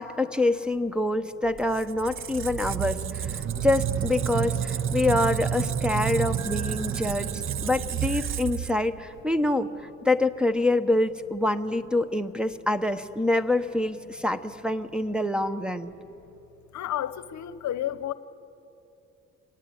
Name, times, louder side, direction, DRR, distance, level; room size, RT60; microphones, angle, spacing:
voice 1, 0.0-7.3 7.6-15.9, left 2 dB, 5° right, 5 dB, 1.0 m, -26 dB
Squeak, 1.5-9.2, right 9 dB, 45° right, 0.7 m, -30 dB
sound 1, 6.4-9.3, right 4 dB, 35° left, 1.6 m, -49 dB
voice 2, 16.7-18.1, left 11 dB, 65° left, 15 dB, 0.9 m, -31 dB
25.5 x 18.5 x 9.8 m, 2.9 s
cardioid pair, 90°, 30 cm